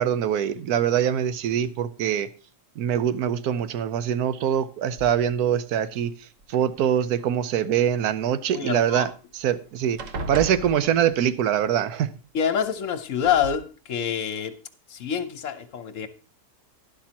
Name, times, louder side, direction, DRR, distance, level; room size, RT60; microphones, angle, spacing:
voice 1, 0.0-2.3 2.8-6.1 6.5-9.1 9.4-10.0 10.3-12.1, right 9 dB, 80° right, 1.1 m, -23 dB
sound 1, 5.0-5.5 6.4-7.2 9.0-9.1 9.4-9.6 10.0-11.4 12.6-12.7 13.2-13.6, right 2 dB, 60° right, 1.3 m, -36 dB
voice 2, 8.5-9.1 12.3-14.5 14.9-16.1, left 8 dB, 60° left, 1.0 m, -26 dB
11.5 x 11.0 x 2.9 m
omnidirectional pair, 1.6 m